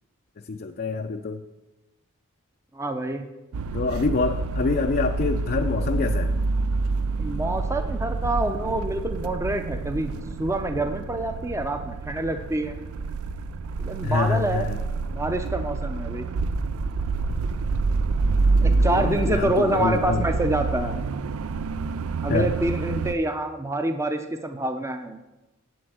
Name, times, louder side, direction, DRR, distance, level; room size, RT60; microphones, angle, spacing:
voice 1, 0.5-1.4 3.7-6.3 14.0-14.8 18.6-20.2 22.3-22.5, left 4 dB, 45° left, 4 dB, 0.5 m, -26 dB
voice 2, 2.7-3.3 7.2-10.1 10.4-12.7 13.8-14.7 15.1-16.3 18.6-21.0 22.2-25.2, right 1 dB, 15° right, 7 dB, 0.6 m, -27 dB
sound 1, 3.5-23.1, right 3 dB, 80° right, 0.4 m, -27 dB
7.9 x 7.8 x 7.9 m, 1.1 s
head